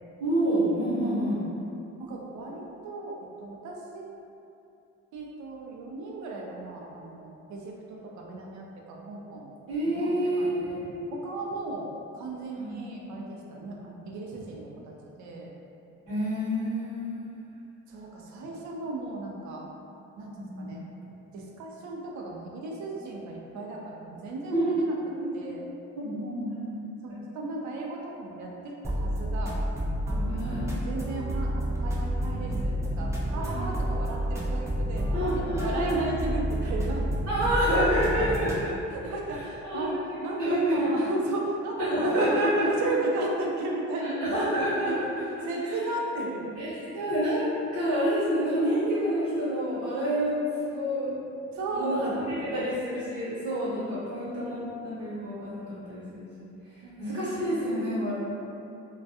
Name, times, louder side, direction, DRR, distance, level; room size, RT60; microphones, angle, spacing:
voice 1, 0.2-1.4 9.7-11.0 12.5-12.7 16.1-17.6 20.3-20.7 24.5-24.7 25.2-25.3 25.9-26.9 30.2-30.8 33.4-33.6 35.1-36.0 37.3-38.7 39.6-39.9 40.4-40.9 41.9-42.7 44.0-45.1 46.6-50.3 50.6-51.1 51.4-56.3 57.0-58.2, equal, 40° right, -13 dB, 1.0 m, -28 dB
voice 2, 2.0-4.1 5.1-9.5 9.9-10.8 11.1-15.5 17.9-19.6 20.2-20.8 21.3-25.0 25.3-25.7 27.0-29.6 30.1-37.1 38.3-38.4 38.9-45.0 45.3-46.6 51.5-52.7 56.8-57.2, right 2 dB, 70° right, -1 dB, 0.5 m, -36 dB
sound 1, 28.8-38.6, equal, 10° right, 0.4 m, -29 dB
2.3 x 2.2 x 2.6 m, 2.7 s
cardioid pair, 90°, 30 cm